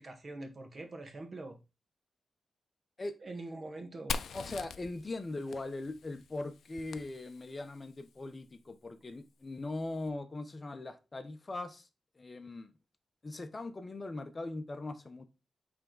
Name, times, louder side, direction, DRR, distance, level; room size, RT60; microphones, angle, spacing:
voice 1, 0.0-1.6 3.2-4.2, right 2 dB, 40° right, 1.5 m, -44 dB
Fire, 4.1-7.8, left 5 dB, 85° left, 0.5 m, -42 dB
voice 2, 4.3-11.9 12.2-12.7 13.2-15.3, left 2 dB, 30° left, 0.7 m, -40 dB
8.6 x 3.4 x 3.9 m
wide cardioid pair, 100°, 0 cm